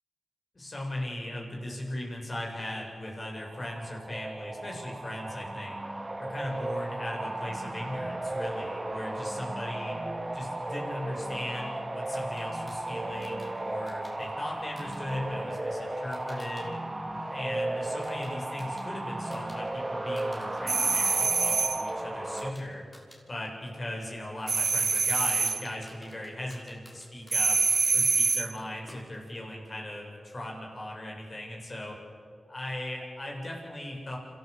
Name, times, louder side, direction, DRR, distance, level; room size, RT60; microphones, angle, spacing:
voice 1, 0.5-5.8 6.2-10.0 10.3-16.7 17.3-22.8 23.3-27.6 27.9-32.0 32.5-34.2, left 1 dB, 50° left, -1 dB, 7.4 m, -38 dB
sound 1, 3.3-22.5, right 1 dB, 30° right, 2.1 m, -35 dB
sound 2, 12.1-16.7 17.0-19.6 19.9-20.6 20.9-28.0 28.6-29.5, left 1 dB, 30° left, 6.3 m, -56 dB
sound 3, 20.7-21.9 24.5-25.7 27.3-28.6, right 5 dB, 70° right, 0.4 m, -25 dB
27.0 x 14.0 x 8.5 m, 2.4 s
cardioid pair, 40°, 0 cm